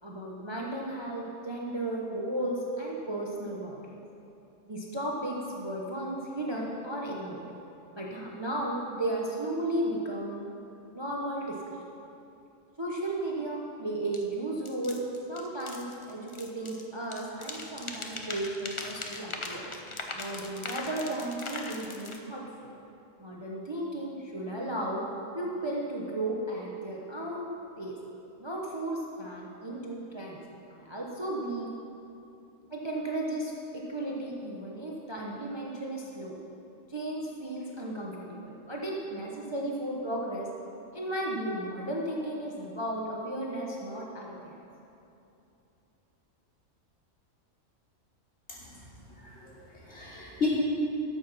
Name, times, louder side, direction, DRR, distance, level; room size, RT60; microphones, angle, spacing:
voice 1, 0.0-3.8 4.7-7.5 7.9-10.5 10.9-11.8 12.8-15.0 15.3-19.7 20.1-22.7 23.2-25.0 25.3-27.5 27.8-27.9 28.4-30.4 30.7-31.7 32.7-36.3 36.9-40.5 40.9-44.6, right 1 dB, 20° right, -3 dB, 1.0 m, -34 dB
sound 1, 14.1-14.2 14.6-16.8 17.1-22.2, left 2 dB, 30° left, 0.7 m, -40 dB
voice 2, 48.5-48.8 49.1-50.5, left 6 dB, 55° left, -8 dB, 3.4 m, -35 dB
13.0 x 7.8 x 5.7 m, 2.9 s
omnidirectional pair, 1.4 m